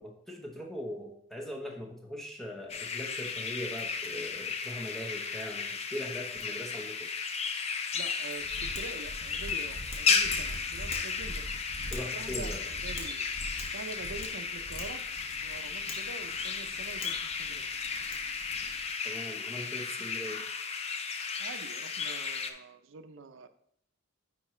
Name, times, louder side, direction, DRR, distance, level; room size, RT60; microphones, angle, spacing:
voice 1, 0.0-7.1 11.9-12.6 19.0-20.4, equal, ahead, 0 dB, 1.0 m, -40 dB
sound 1, 2.7-22.5, left 5 dB, 30° left, 0.5 m, -34 dB
voice 2, 7.9-11.6 12.1-13.3 13.7-15.0 15.4-17.7 21.4-23.5, right 4 dB, 65° right, 9 dB, 0.5 m, -45 dB
Mechanisms, 8.4-18.9, left 1 dB, 65° left, 1.5 m, -43 dB
9.6 x 4.5 x 3.2 m, 0.69 s
head